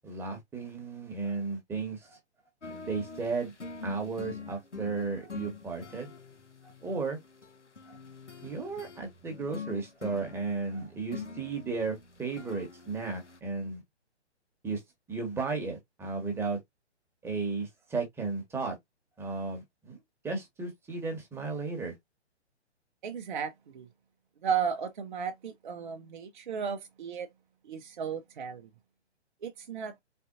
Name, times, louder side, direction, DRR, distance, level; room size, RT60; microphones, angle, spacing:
voice 1, 0.0-2.2 2.8-3.5 3.8-6.1 6.8-7.2 8.4-13.8 14.6-14.8 15.1-16.6 17.2-18.7 19.2-20.0 20.2-21.9, right 4 dB, 5° right, 1.3 m, -34 dB
sound 1, 2.6-13.4, left 5 dB, 85° left, 1.2 m, -45 dB
voice 2, 23.0-23.9 24.4-27.3 27.6-28.7 29.4-29.9, right 7 dB, 45° right, 0.7 m, -34 dB
4.3 x 3.8 x 2.6 m
figure-of-eight pair, 130°, 35 cm